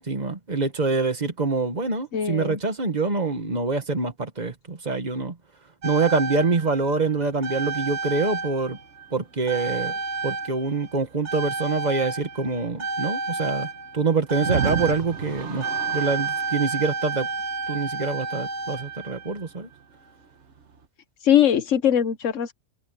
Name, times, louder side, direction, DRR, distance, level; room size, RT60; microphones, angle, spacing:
voice 1, 0.0-5.3 5.8-8.8 9.1-9.9 10.2-13.7 13.9-15.7 15.9-17.3 17.7-19.7, right 4 dB, 35° right, 1.8 m, -25 dB
voice 2, 2.1-2.6 21.2-22.5, left 9 dB, 85° left, 1.4 m, -21 dB
sound 1, 5.8-9.1 9.5-19.5 20.5-20.6, right 4 dB, 70° right, 1.6 m, -30 dB
omnidirectional pair, 1.2 m